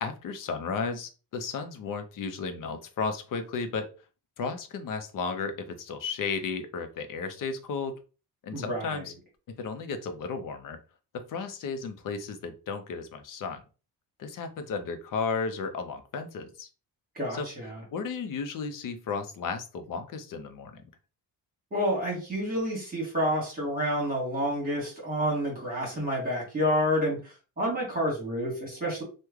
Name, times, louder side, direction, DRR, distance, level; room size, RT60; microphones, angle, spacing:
voice 1, 0.0-3.9 4.4-7.9 8.4-9.1 9.5-10.8 11.1-13.6 14.2-16.7 17.3-17.5 17.9-20.8, left 5 dB, 50° left, 7 dB, 0.6 m, -34 dB
voice 2, 8.5-9.0 17.1-17.8 21.7-29.0, equal, 20° right, -3 dB, 1.3 m, -29 dB
3.1 x 2.2 x 3.5 m, 0.34 s
cardioid pair, 155°, 41 cm